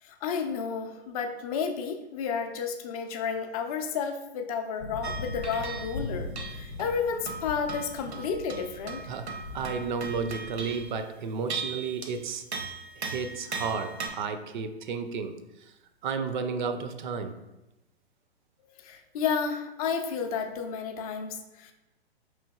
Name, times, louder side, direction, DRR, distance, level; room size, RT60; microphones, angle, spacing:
voice 1, 0.0-9.0 18.8-21.7, left 6 dB, 35° left, 6 dB, 0.5 m, -32 dB
sound 1, 4.8-10.9, left 3 dB, 75° left, 0.7 m, -40 dB
sound 2, 5.0-6.0 6.4-11.1 11.5-12.2 12.5-14.1, right 4 dB, 80° right, 0.7 m, -38 dB
voice 2, 9.1-12.4 13.0-15.7 16.0-17.3, right 5 dB, 50° right, 9 dB, 0.4 m, -33 dB
5.1 x 3.1 x 2.3 m, 0.98 s
figure-of-eight pair, 115°, 32 cm